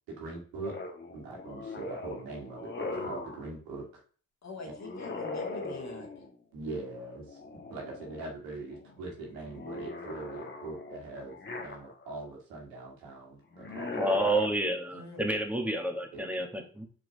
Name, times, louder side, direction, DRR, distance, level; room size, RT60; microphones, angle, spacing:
voice 1, 0.1-3.9 4.6-4.7 6.5-7.4 7.7-14.3 16.1-16.2, right 3 dB, 80° right, 0 dB, 1.9 m, -42 dB
sound 1, 0.6-3.4 4.8-6.3 7.3-8.3 8.7-12.2 13.5-14.5, left 3 dB, 30° left, 1.4 m, -40 dB
voice 2, 4.4-6.1 14.9-15.3, left 3 dB, 45° left, 1 dB, 2.5 m, -44 dB
voice 3, 14.0-16.9, right 1 dB, 5° right, 4 dB, 1.8 m, -30 dB
6.3 x 4.6 x 3.4 m, 0.42 s
hypercardioid pair, 45°, 37 cm